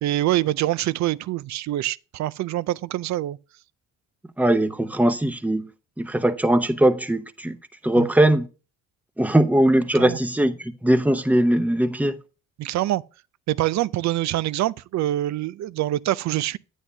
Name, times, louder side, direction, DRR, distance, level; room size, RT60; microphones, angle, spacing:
voice 1, 0.0-3.4 8.0-8.1 9.9-10.2 12.6-13.0 13.5-16.6, right 15 dB, 65° right, 0.4 m, -25 dB
voice 2, 4.4-5.7 6.0-7.6 7.8-8.5 9.2-12.2, right 1 dB, 5° right, 0.7 m, -20 dB
9.0 x 8.1 x 2.8 m
cardioid pair, 90°, 30 cm